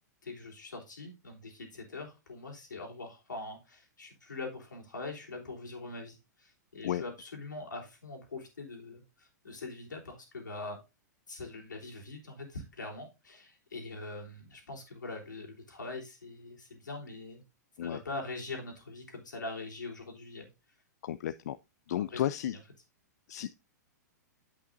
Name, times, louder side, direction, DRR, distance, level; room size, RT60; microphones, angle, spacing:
voice 1, 0.2-10.8 11.3-17.4 17.8-20.5 22.0-22.2, left 3 dB, 85° left, 3.5 m, -43 dB
voice 2, 21.0-21.6 21.9-22.6 23.3-23.5, left 11 dB, 65° left, 0.4 m, -33 dB
8.8 x 8.2 x 2.6 m
hypercardioid pair, 110°, 10 cm